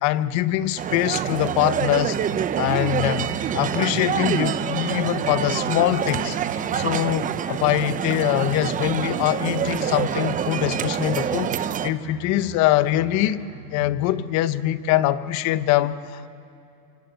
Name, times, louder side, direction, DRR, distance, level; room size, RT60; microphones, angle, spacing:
voice 1, 0.0-2.2 2.6-6.4 6.7-13.4 13.7-16.3, left 13 dB, 35° left, 14 dB, 1.0 m, -23 dB
sound 1, 0.8-11.9, right 9 dB, 15° right, 0.7 m, -26 dB
sound 2, 2.6-5.6 5.9-8.2 8.5-14.2, right 2 dB, 40° right, 5.8 m, -41 dB
28.5 x 25.0 x 8.1 m, 2.6 s
hypercardioid pair, 125°, 46 cm